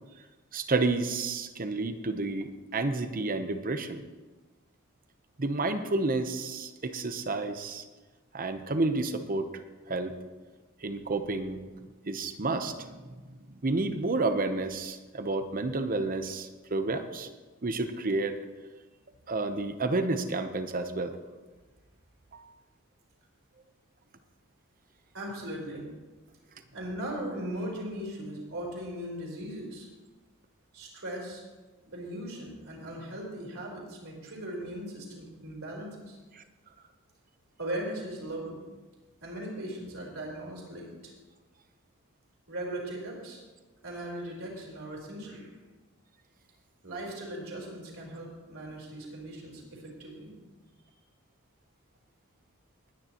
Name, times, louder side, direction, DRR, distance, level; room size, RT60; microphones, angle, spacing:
voice 1, 0.5-4.0 5.4-7.8 8.3-9.5 9.9-10.1 10.8-11.6 12.0-17.3 17.6-18.3 19.3-21.2 22.3-22.5, right 3 dB, 40° right, 9 dB, 0.8 m, -30 dB
voice 2, 25.1-25.9 26.7-29.9 30.7-31.4 31.9-36.2 37.6-38.6 39.2-41.1 42.5-43.4 43.8-45.5 46.8-50.3, right 1 dB, 65° right, -2 dB, 4.2 m, -38 dB
20.5 x 9.7 x 3.0 m, 1.3 s
head